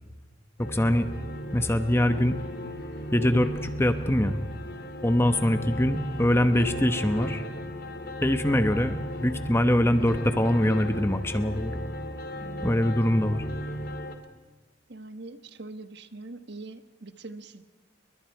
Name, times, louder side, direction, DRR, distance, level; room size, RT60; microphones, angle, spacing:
sound 1, 0.6-14.1, equal, 45° left, 2.4 m, -36 dB
voice 1, 0.6-1.1 1.5-2.4 3.1-4.4 5.0-7.4 8.2-11.8 12.6-13.5, left 1 dB, 10° left, 9 dB, 1.1 m, -23 dB
voice 2, 12.4-12.7 14.9-17.6, right 2 dB, 55° right, 10 dB, 1.3 m, -43 dB
30.0 x 22.5 x 4.8 m, 1.2 s
head